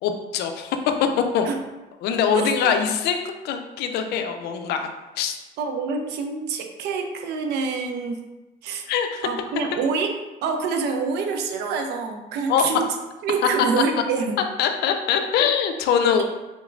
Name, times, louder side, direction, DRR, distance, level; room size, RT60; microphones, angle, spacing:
voice 1, 0.0-1.1 1.3-1.5 2.0-4.9 5.2-5.4 8.9-9.3 12.5-12.7 14.6-16.2, left 7 dB, 75° left, 6 dB, 0.4 m, -23 dB
voice 2, 2.3-2.7 5.6-8.2 8.6-8.9 9.2-10.1 10.4-12.9 13.2-14.4, right 5 dB, 80° right, 4 dB, 0.5 m, -26 dB
3.5 x 3.0 x 2.5 m, 1.1 s
cardioid pair, 110°, 17 cm